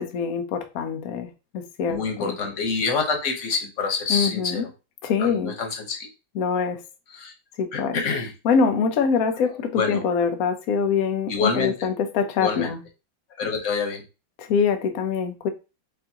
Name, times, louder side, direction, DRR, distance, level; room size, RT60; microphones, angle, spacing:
voice 1, 0.0-2.4 4.1-4.7 5.0-5.5 6.3-6.8 7.6-8.0 8.4-12.8 14.4-15.5, left 6 dB, 85° left, 0.7 m, -24 dB
voice 2, 1.9-4.7 5.2-6.1 7.1-7.3 7.7-8.3 9.4-10.0 11.3-11.9 12.4-12.7 13.4-14.0, left 5 dB, 45° left, 1.1 m, -27 dB
6.9 x 2.6 x 2.8 m
omnidirectional pair, 2.4 m